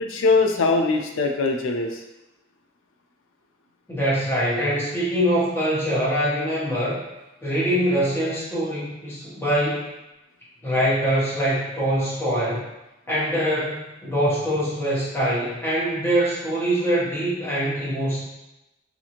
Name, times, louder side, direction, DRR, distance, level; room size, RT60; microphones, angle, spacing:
voice 1, 0.0-2.0, left 3 dB, 80° left, 3 dB, 0.4 m, -21 dB
voice 2, 3.9-7.0 7.4-9.9 10.6-12.6 13.1-18.2, equal, 10° left, -9 dB, 0.8 m, -23 dB
2.6 x 2.5 x 2.9 m, 0.97 s
head